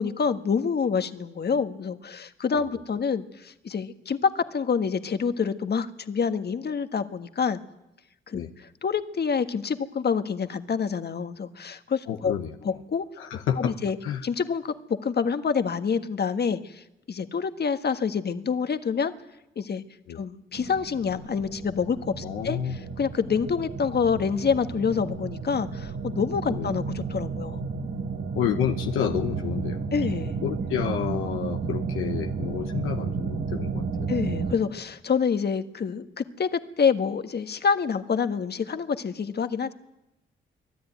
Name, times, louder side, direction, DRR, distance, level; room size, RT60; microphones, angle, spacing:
voice 1, 0.0-7.6 8.3-8.4 8.8-12.3 12.6-13.1 13.6-14.0 14.2-19.1 19.5-19.8 20.1-22.6 23.0-27.6 29.9-30.4 34.1-39.7, left 6 dB, 50° left, 9 dB, 1.5 m, -27 dB
voice 2, 12.1-12.8 13.2-13.8 14.0-14.2 20.1-20.2 22.2-22.8 26.5-26.7 28.3-29.8 30.4-34.1, left 9 dB, 90° left, 5 dB, 1.1 m, -30 dB
sound 1, 20.5-34.6, right 5 dB, 80° right, 2.9 m, -32 dB
24.5 x 14.5 x 9.3 m, 0.92 s
supercardioid pair, 55°, 21 cm